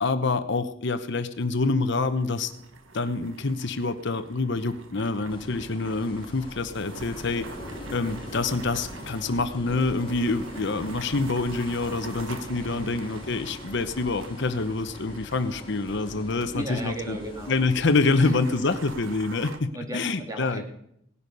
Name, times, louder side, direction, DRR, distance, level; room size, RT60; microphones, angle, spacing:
voice 1, 0.0-2.5 2.9-7.5 7.9-17.2 17.5-20.6, left 3 dB, 65° left, 10 dB, 0.9 m, -26 dB
sound 1, 1.3-16.5 16.8-16.9 17.2-19.6, right 2 dB, 85° right, 1.5 m, -44 dB
sound 2, 5.3-18.4, left 1 dB, 25° left, 4.4 m, -42 dB
voice 2, 12.6-13.0 16.5-17.5 18.2-18.5 19.7-20.7, equal, 20° right, 2 dB, 2.7 m, -35 dB
18.0 x 11.0 x 5.4 m, 0.73 s
head